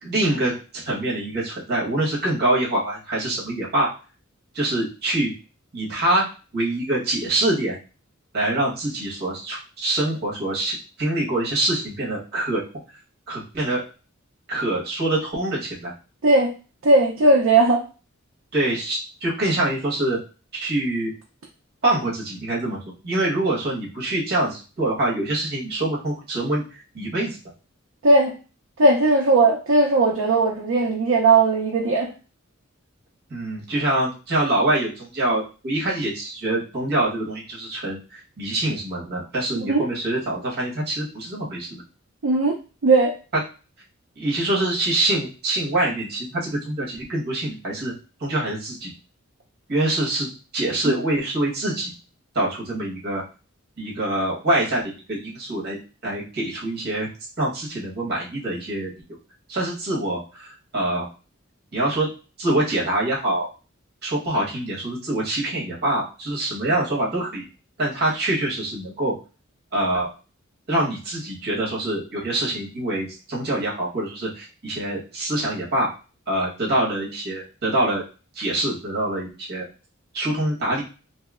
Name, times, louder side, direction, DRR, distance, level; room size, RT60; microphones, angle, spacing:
voice 1, 0.0-3.9 4.5-5.3 5.7-6.3 6.5-7.8 8.3-12.6 13.3-13.8 14.5-15.9 18.5-20.2 20.5-21.1 21.8-22.8 23.0-27.4 33.3-41.8 44.2-47.9 48.2-48.9 49.7-51.9 52.3-53.2 53.8-55.8 56.0-57.1 57.4-58.9 59.5-61.1 61.7-62.1 62.4-63.5 64.0-67.4 67.8-69.1 69.7-70.1 70.7-75.9 76.3-78.0 78.3-79.6 80.1-80.8, right 1 dB, 55° right, -4 dB, 1.2 m, -25 dB
voice 2, 16.8-17.8 28.0-28.3 28.8-32.1 39.6-39.8 42.2-42.6 42.8-43.2 50.9-51.0, right 2 dB, 75° right, -1 dB, 0.5 m, -17 dB
3.0 x 2.7 x 2.4 m, 0.34 s
head